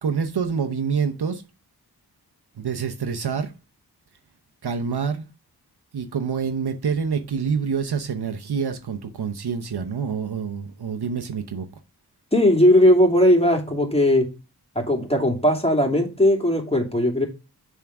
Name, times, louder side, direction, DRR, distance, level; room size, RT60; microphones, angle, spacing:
voice 1, 0.0-1.4 2.6-3.5 4.6-5.3 5.9-11.7, right 6 dB, 75° right, 0.8 m, -26 dB
voice 2, 12.3-14.2 14.7-17.3, left 1 dB, 15° left, 2.6 m, -18 dB
7.1 x 3.7 x 5.9 m
cardioid pair, 45°, 39 cm